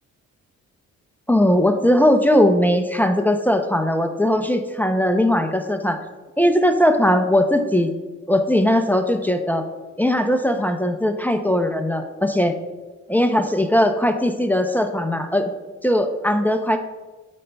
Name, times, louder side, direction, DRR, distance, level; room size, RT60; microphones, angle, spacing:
voice 1, 1.3-6.0 6.4-7.9 8.3-9.7 10.0-12.5 13.1-15.5 15.8-16.8, left 1 dB, 5° left, 6 dB, 0.5 m, -19 dB
12.5 x 5.2 x 2.2 m, 1.3 s
cardioid pair, 90°, 30 cm